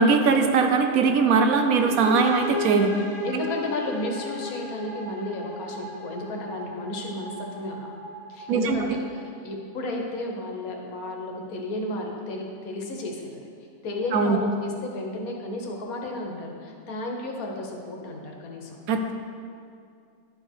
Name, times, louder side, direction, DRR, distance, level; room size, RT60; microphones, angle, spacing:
voice 1, 0.0-3.0 8.5-8.8 14.1-14.4 18.9-19.1, right 4 dB, 80° right, 6 dB, 1.2 m, -20 dB
sound 1, 1.8-9.4, left 1 dB, 45° left, 1.0 m, -36 dB
voice 2, 3.2-7.9 8.3-13.4 13.8-18.8, left 2 dB, 90° left, 1 dB, 1.5 m, -33 dB
11.0 x 4.9 x 4.5 m, 2.4 s
omnidirectional pair, 1.5 m